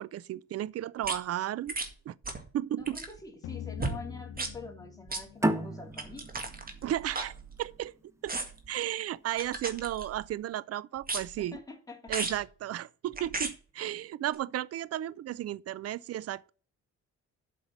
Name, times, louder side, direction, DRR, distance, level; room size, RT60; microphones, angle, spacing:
voice 1, 0.0-1.7 2.1-2.2 2.5-3.0 6.8-7.3 7.6-7.9 8.2-8.3 8.7-11.6 12.1-16.5, right 12 dB, 55° right, 0.5 m, -34 dB
sound 1, 1.0-1.2 1.7-1.9 2.2-2.5 2.8-3.2 3.8-4.0 4.3-4.5 5.1-5.2 5.9-7.8 8.3-8.7 9.4-10.3 11.0-11.5 12.1-12.4 13.1-13.5 14.3-14.4, right 3 dB, 30° right, 1.9 m, -36 dB
voice 2, 2.8-6.3 11.4-12.1, left 3 dB, 10° left, 2.9 m, -46 dB
sound 2, 3.4-6.4, left 9 dB, 85° left, 0.7 m, -43 dB
sound 3, 5.4-8.6, right 1 dB, 10° right, 1.0 m, -33 dB
8.0 x 5.7 x 7.4 m
cardioid pair, 90°, 30 cm